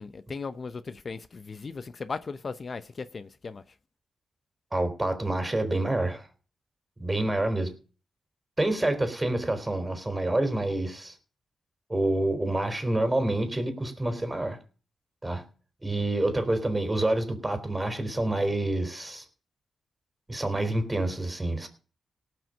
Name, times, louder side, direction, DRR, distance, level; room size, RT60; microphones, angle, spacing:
voice 1, 0.0-3.6, left 4 dB, 50° left, 0.7 m, -37 dB
voice 2, 4.7-6.3 7.0-7.7 8.6-11.1 11.9-14.6 15.2-15.4 15.8-19.2 20.3-21.7, right 1 dB, 20° right, 3.8 m, -27 dB
18.0 x 6.2 x 6.5 m
cardioid pair, 60°, 0 cm